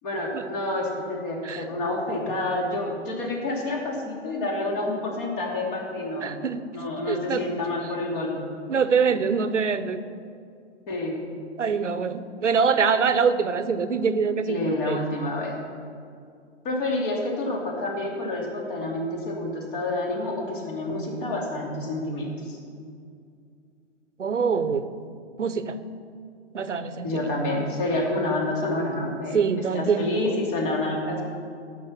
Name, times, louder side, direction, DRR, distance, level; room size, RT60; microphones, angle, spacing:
voice 1, 0.0-6.4 6.7-8.5 10.9-11.2 14.4-15.6 16.6-22.6 27.0-29.4 29.7-31.2, left 2 dB, 45° left, -1 dB, 2.9 m, -28 dB
voice 2, 6.2-6.6 7.1-7.4 8.7-10.0 11.6-15.0 24.2-24.9 25.4-25.8 26.5-27.3 29.3-30.1, right 5 dB, 85° right, 12 dB, 0.8 m, -24 dB
14.5 x 6.2 x 6.0 m, 2.3 s
figure-of-eight pair, 115°, 36 cm